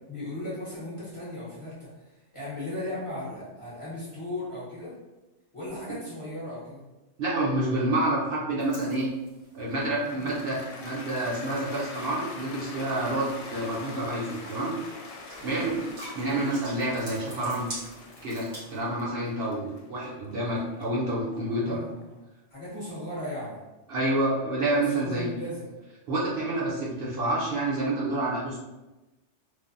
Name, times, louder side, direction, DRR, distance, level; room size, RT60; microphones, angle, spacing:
voice 1, 0.1-5.0 5.5-6.8 10.0-10.4 15.4-15.8 21.4-22.2 22.5-23.6 24.9-25.7, left 1 dB, 30° left, -8 dB, 0.7 m, -37 dB
voice 2, 7.2-9.1 9.5-14.8 15.4-15.8 16.1-17.7 18.2-21.8 23.9-25.3 26.1-28.6, right 1 dB, 60° right, -5 dB, 0.8 m, -28 dB
sound 1, 8.6-18.8, right 1 dB, 90° right, 1.7 m, -47 dB
Cheering / Applause, 9.8-22.0, left 3 dB, 75° left, 0.8 m, -44 dB
3.2 x 2.0 x 2.5 m, 1.0 s
omnidirectional pair, 1.2 m